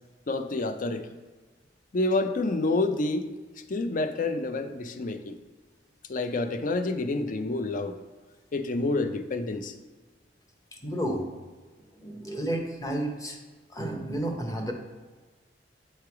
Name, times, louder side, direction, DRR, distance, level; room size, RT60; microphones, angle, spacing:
voice 1, 0.3-1.1 1.9-3.3 3.7-5.3 6.1-8.0 8.5-9.8, left 2 dB, 45° left, 8 dB, 0.5 m, -28 dB
voice 2, 10.8-11.3 12.0-13.4 13.7-14.7, right 1 dB, 20° left, 2 dB, 0.8 m, -31 dB
7.6 x 3.3 x 4.6 m, 1.3 s
head